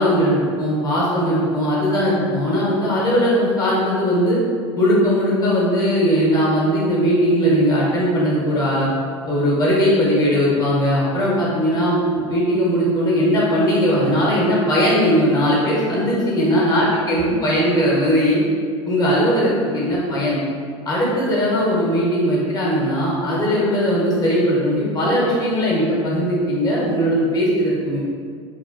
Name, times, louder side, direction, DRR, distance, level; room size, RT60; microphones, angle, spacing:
voice 1, 0.0-4.4 4.7-8.9 9.3-18.4 18.9-20.4 20.8-28.0, equal, 25° left, -6 dB, 0.9 m, -19 dB
3.0 x 2.2 x 2.5 m, 2.1 s
hypercardioid pair, 90°, 16 cm